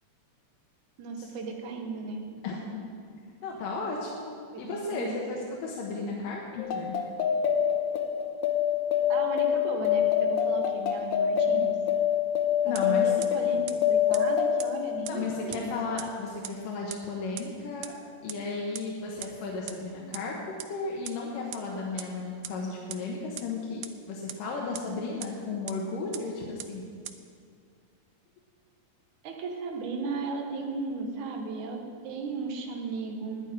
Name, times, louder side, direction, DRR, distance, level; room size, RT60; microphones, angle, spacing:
voice 1, 1.0-2.3 4.5-5.2 9.1-11.8 12.6-15.7 29.2-33.5, right 4 dB, 70° right, 2 dB, 2.7 m, -36 dB
voice 2, 2.4-2.8 3.4-4.3 4.6-7.0 12.6-13.1 15.1-17.9 18.2-23.8 24.1-26.9, left 3 dB, 90° left, -2 dB, 2.9 m, -34 dB
sound 1, 6.6-15.6, left 9 dB, 70° left, 1.5 m, -26 dB
sound 2, 12.8-12.9 13.2-13.3 13.7-13.8 14.1-14.2 14.6-14.7 15.1-15.2 15.5-15.6 16.0-16.1 16.4-16.5 16.9-17.0 17.4-17.5 17.8-17.9 18.3-18.4 18.8-18.9 19.2-19.3 19.7-19.8 20.1-20.2 20.6-20.7 21.1-21.2 21.5-21.6 22.0-22.1 22.4-22.5 22.9-23.0 23.4-23.5 23.8-23.9 24.3-24.4 24.8-24.9 25.2-25.3 25.7-25.8 26.1-26.2 26.6-26.7 27.1-27.2, right 14 dB, 85° right, 2.2 m, -37 dB
10.5 x 9.1 x 9.9 m, 2.2 s
omnidirectional pair, 3.7 m